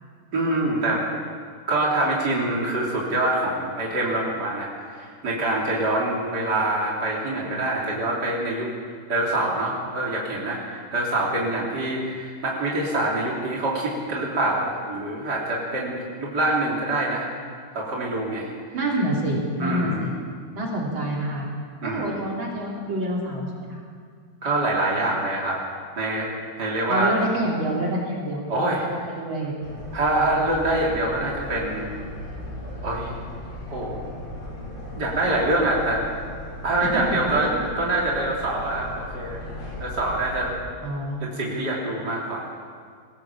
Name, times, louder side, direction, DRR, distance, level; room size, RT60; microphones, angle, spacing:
voice 1, 0.3-1.0 1.7-8.7 9.1-17.3 17.7-18.5 19.5-20.1 21.8-22.1 24.4-25.6 26.0-26.3 26.6-27.1 28.5-28.9 29.9-31.9 32.8-33.2 33.7-34.0 34.9-36.0 36.6-39.4 39.8-40.5 41.2-42.5, right 2 dB, 55° right, -4 dB, 3.8 m, -25 dB
voice 2, 18.7-20.1 20.5-21.5 21.8-23.8 26.9-28.4 29.1-29.5 36.9-37.0 37.4-37.5 40.8-41.4, right 1 dB, 80° right, -2 dB, 4.2 m, -27 dB
sound 1, 29.6-40.5, left 1 dB, 85° left, 7.0 m, -37 dB
21.5 x 16.5 x 7.4 m, 2.1 s
omnidirectional pair, 2.1 m